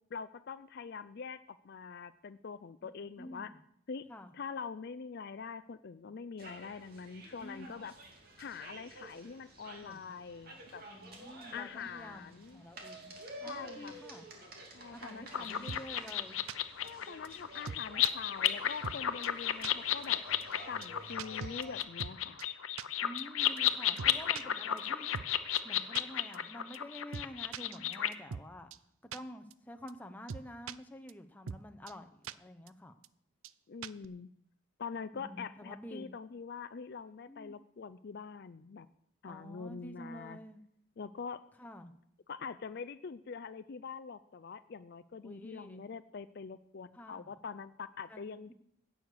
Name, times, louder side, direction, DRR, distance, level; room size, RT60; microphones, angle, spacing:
voice 1, 0.1-3.5 3.9-4.1 4.3-7.9 8.4-10.8 11.5-12.6 13.4-14.0 14.7-15.7 16.8-20.2 20.7-22.4 33.7-34.3 34.8-38.9 39.2-40.4 41.0-41.4 42.3-48.5, left 5 dB, 50° left, 14 dB, 0.4 m, -44 dB
voice 2, 3.2-3.6 4.1-4.3 7.4-7.8 9.8-10.1 10.9-14.3 14.9-16.4 23.0-25.1 25.6-28.7 29.0-33.0 35.1-36.1 37.3-37.5 39.2-40.6 41.6-41.9 45.2-45.8 46.9-47.3 48.1-48.5, equal, 10° left, 5 dB, 0.8 m, -49 dB
sound 1, 6.4-21.8, right 1 dB, 45° right, 2.5 m, -51 dB
sound 2, 15.3-28.1, left 11 dB, 80° left, 0.7 m, -33 dB
sound 3, 15.7-15.8 16.1-16.2 16.5-16.6 16.9-17.0 17.2-17.3 17.7-18.1 18.5-18.6 18.8-19.0 19.2-19.3 19.6-19.7 20.0-20.1 20.4-20.5 20.8-20.9 21.2-22.1 22.4-22.5 22.8-22.9 23.2-23.3 23.6-23.7 24.0-24.4 24.8-24.9 25.1-25.3 25.5-25.6 26.0-26.1 26.3-26.4 26.7-26.8 27.1-27.3 27.5-28.4 28.7-28.8 29.1-29.2 29.5-29.6 29.9-30.0 30.3-30.8 31.1-31.2 31.5-31.6 31.9-32.0 32.2-32.3 32.7-32.8 33.0-33.1 33.4-33.5 33.8-34.1, right 6 dB, 75° right, 0.5 m, -41 dB
16.5 x 6.4 x 6.7 m, 0.71 s
head